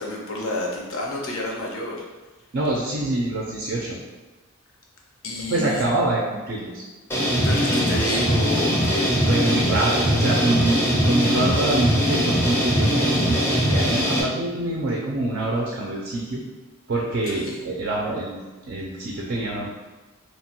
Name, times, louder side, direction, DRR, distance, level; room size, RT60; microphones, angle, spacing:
voice 1, 0.0-2.0 5.2-5.8 7.3-9.2 17.2-17.6, left 1 dB, 60° left, -2 dB, 0.6 m, -30 dB
voice 2, 2.5-4.0 5.5-6.8 9.0-16.4 16.9-19.7, right 2 dB, 50° right, -3 dB, 0.4 m, -25 dB
sound 1, 7.1-14.2, equal, 10° left, 0.5 m, -21 dB
2.9 x 2.2 x 2.8 m, 1.2 s
head